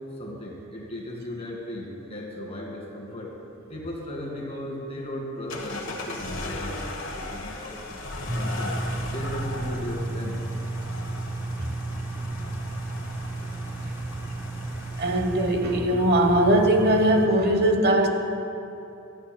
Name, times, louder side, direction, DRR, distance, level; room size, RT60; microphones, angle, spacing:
voice 1, 0.0-3.3 3.7-6.8 7.2-7.8 8.3-8.8 9.1-10.4, left 1 dB, 30° left, -3 dB, 2.1 m, -36 dB
sound 1, 5.5-15.7, left 2 dB, 80° left, 1.3 m, -38 dB
sound 2, 8.3-17.3, right 2 dB, 10° right, 0.4 m, -33 dB
voice 2, 15.0-18.1, right 1 dB, 50° right, 3 dB, 1.1 m, -20 dB
16.5 x 12.0 x 2.3 m, 2.8 s
head